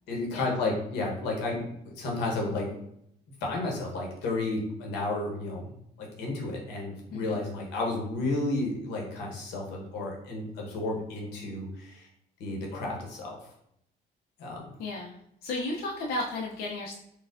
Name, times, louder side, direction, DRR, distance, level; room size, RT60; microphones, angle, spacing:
voice 1, 0.1-2.8 3.4-5.7 6.0-12.1 12.4-13.5 14.4-14.7, left 2 dB, 90° left, 0 dB, 1.0 m, -32 dB
voice 2, 14.8-16.9, left 2 dB, 65° left, -3 dB, 0.6 m, -34 dB
4.2 x 2.3 x 2.4 m, 0.74 s
cardioid pair, 110°, 17 cm